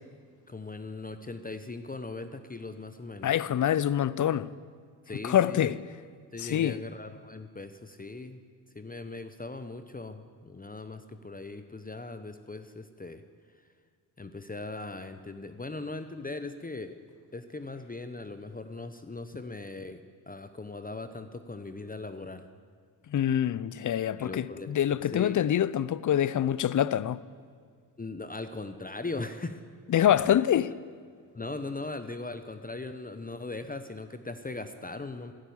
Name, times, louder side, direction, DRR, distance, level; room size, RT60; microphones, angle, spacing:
voice 1, 0.5-3.3 5.1-5.8 6.3-8.4 8.7-13.2 14.2-17.0 17.3-20.0 20.3-22.5 24.2-25.4 28.0-29.6 30.1-30.4 31.3-35.3, left 3 dB, 20° left, 1.0 m, -39 dB
voice 2, 3.2-4.5 5.2-5.8 6.4-6.8 23.1-27.2 29.9-30.7, left 10 dB, 40° left, 0.6 m, -25 dB
15.0 x 11.5 x 7.2 m
supercardioid pair, 50°, 47 cm